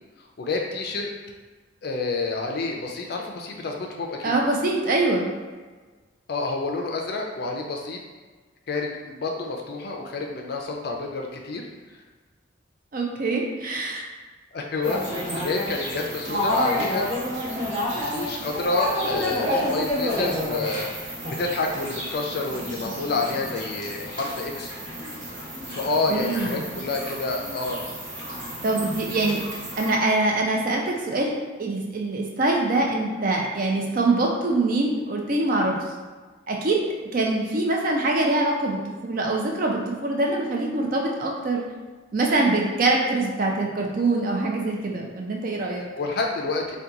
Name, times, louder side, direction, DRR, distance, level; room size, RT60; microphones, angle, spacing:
voice 1, 0.4-1.1 1.8-4.3 6.3-8.0 8.7-11.6 14.5-17.1 17.9-24.8 25.7-27.8 45.9-46.8, left 3 dB, 50° left, 1 dB, 0.4 m, -29 dB
voice 2, 4.2-5.3 12.9-14.0 26.1-26.6 28.6-29.4 29.8-35.8 36.5-36.8 37.1-41.6 42.1-45.8, right 2 dB, 45° right, 0 dB, 0.4 m, -24 dB
sound 1, 14.8-29.9, left 1 dB, 65° right, 0.9 m, -30 dB
2.9 x 2.2 x 3.6 m, 1.4 s
head